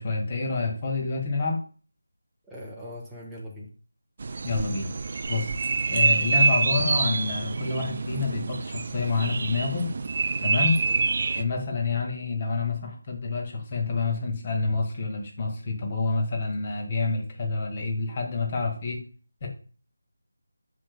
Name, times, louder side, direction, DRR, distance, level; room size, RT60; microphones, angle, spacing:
voice 1, 0.0-1.6 4.4-4.9 5.3-5.5 5.9-9.9 10.4-10.8 11.3-19.0 19.4-19.5, left 3 dB, 30° left, 1 dB, 1.7 m, -28 dB
voice 2, 2.5-3.7 10.8-11.1, left 1 dB, 5° right, -7 dB, 1.0 m, -40 dB
sound 1, 4.2-11.4, right 4 dB, 40° right, 0.4 m, -26 dB
8.5 x 6.4 x 2.2 m, 0.39 s
figure-of-eight pair, 160°, 0 cm